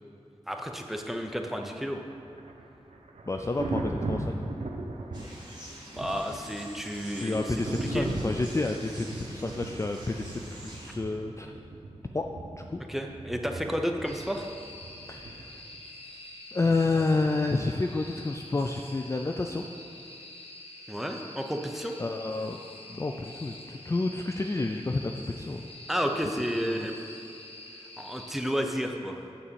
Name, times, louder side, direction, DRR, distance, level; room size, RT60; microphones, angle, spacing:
voice 1, 0.5-2.0 5.9-7.6 7.9-8.1 12.9-14.5 20.9-21.9 25.9-26.9 28.0-29.2, equal, ahead, 3 dB, 0.7 m, -31 dB
Thunder, 2.1-15.8 17.4-17.6, right 2 dB, 85° right, 0.8 m, -38 dB
voice 2, 3.3-4.4 7.1-11.5 12.1-12.2 12.6-12.8 15.1-15.6 16.5-19.7 22.0-22.6 22.9-25.7 26.5-26.9, left 3 dB, 25° left, 3 dB, 0.4 m, -30 dB
sound 1, 5.1-11.0, right 1 dB, 40° right, 2.0 m, -47 dB
sound 2, 14.0-28.3, left 2 dB, 60° left, 1.0 m, -46 dB
8.8 x 4.1 x 6.9 m, 2.7 s
wide cardioid pair, 85°, 11 cm